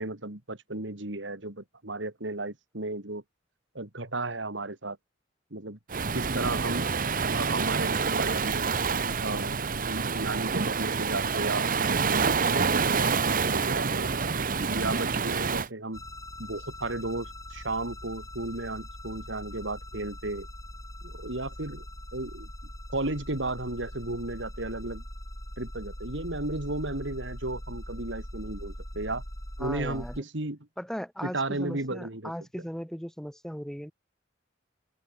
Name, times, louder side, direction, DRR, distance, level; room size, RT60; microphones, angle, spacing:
voice 1, 0.0-3.2 3.7-5.0 5.5-5.8 6.1-6.8 7.2-8.7 9.2-9.6 9.9-14.1 14.7-16.0 16.4-20.5 21.0-21.8 22.1-22.5 22.9-25.0 25.6-29.2 29.6-30.6 31.2-32.3, right 2 dB, 70° right, 3.1 m, -34 dB
Waves surf, 5.9-15.7, right 5 dB, 50° right, 1.1 m, -27 dB
sound 1, 15.9-30.2, left 1 dB, 20° left, 6.4 m, -42 dB
voice 2, 29.6-30.2 30.8-33.9, equal, 5° left, 2.7 m, -37 dB
open air
head